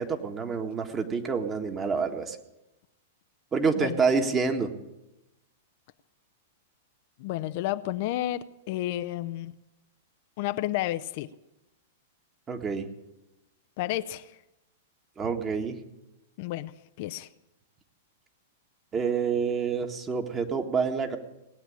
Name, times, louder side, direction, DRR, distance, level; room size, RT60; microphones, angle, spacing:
voice 1, 0.0-2.4 3.5-4.7 12.5-12.9 15.2-15.8 18.9-21.2, right 5 dB, 20° right, 5 dB, 1.7 m, -27 dB
voice 2, 7.2-9.5 10.4-11.3 13.8-14.3 16.4-17.3, left 14 dB, 50° left, 12 dB, 0.5 m, -31 dB
18.5 x 9.0 x 8.6 m, 0.94 s
hypercardioid pair, 105°, 0 cm